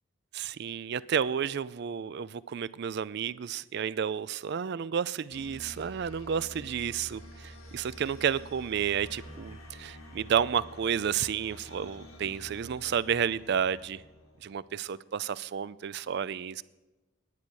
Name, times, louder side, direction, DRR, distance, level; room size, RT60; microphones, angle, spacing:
voice 1, 0.3-14.0 14.4-16.6, right 7 dB, 50° right, 18 dB, 0.3 m, -31 dB
sound 1, 5.3-14.7, equal, 85° left, 2.3 m, -48 dB
10.5 x 8.6 x 6.3 m, 1.1 s
head